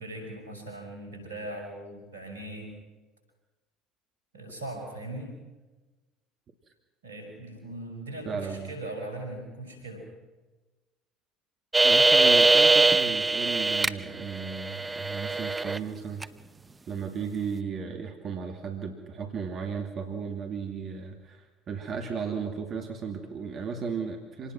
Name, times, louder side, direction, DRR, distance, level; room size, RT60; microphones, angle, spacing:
voice 1, 0.0-2.8 4.3-5.4 7.0-10.0, right 1 dB, 90° right, 3 dB, 6.0 m, -39 dB
voice 2, 8.3-8.7 11.8-16.3 16.9-24.5, right 6 dB, 45° right, 4 dB, 2.5 m, -35 dB
sound 1, 11.7-13.9 14.2-15.8 16.2-16.3, right 3 dB, 20° right, 0.9 m, -22 dB
26.5 x 19.5 x 6.0 m, 1.2 s
hypercardioid pair, 65°, 0 cm